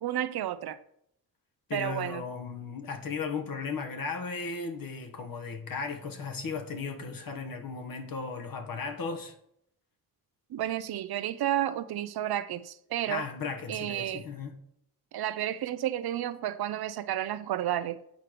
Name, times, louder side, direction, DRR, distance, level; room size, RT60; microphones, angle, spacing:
voice 1, 0.0-0.8 1.7-2.2 10.5-13.2 13.7-14.2 15.1-18.0, right 12 dB, 85° right, 0.6 m, -31 dB
voice 2, 1.7-9.3 13.1-14.5, left 5 dB, 65° left, 1.4 m, -36 dB
8.2 x 4.7 x 5.0 m
cardioid pair, 80°, 37 cm